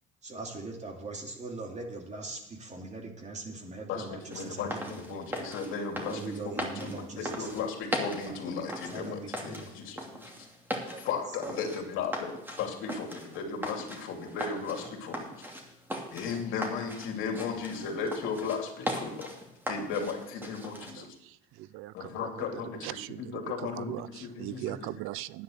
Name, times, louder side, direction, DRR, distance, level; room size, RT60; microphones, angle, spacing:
voice 1, 0.2-5.4 6.1-7.6 8.3-8.4 8.9-9.7 10.9-11.6, right 3 dB, 35° right, 2.7 m, -41 dB
voice 2, 4.3-10.3 11.0-15.3 16.1-19.3 19.7-21.1 21.9-24.8, left 5 dB, 75° left, 2.7 m, -36 dB
sound 1, 4.3-20.9, equal, 10° right, 2.6 m, -39 dB
voice 3, 21.0-25.4, right 16 dB, 80° right, 0.5 m, -40 dB
10.0 x 9.7 x 6.5 m
supercardioid pair, 90°, 21 cm